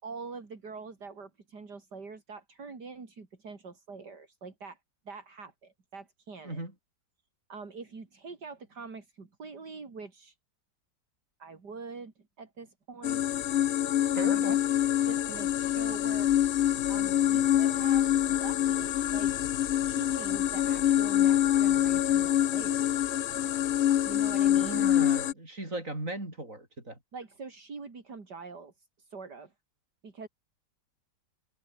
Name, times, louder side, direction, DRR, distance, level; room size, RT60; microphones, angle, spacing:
voice 1, 0.0-4.8 5.1-6.6 7.5-10.4 11.4-13.5 14.1-14.5 15.1-16.3 16.9-19.3 19.9-23.1 24.1-25.1 27.1-29.5 30.0-30.3, right 4 dB, 70° right, 3.8 m, -44 dB
sound 1, 13.0-25.3, left 11 dB, 75° left, 0.6 m, -26 dB
voice 2, 14.1-14.6 24.5-27.0, right 1 dB, 45° right, 8.4 m, -37 dB
omnidirectional pair, 1.9 m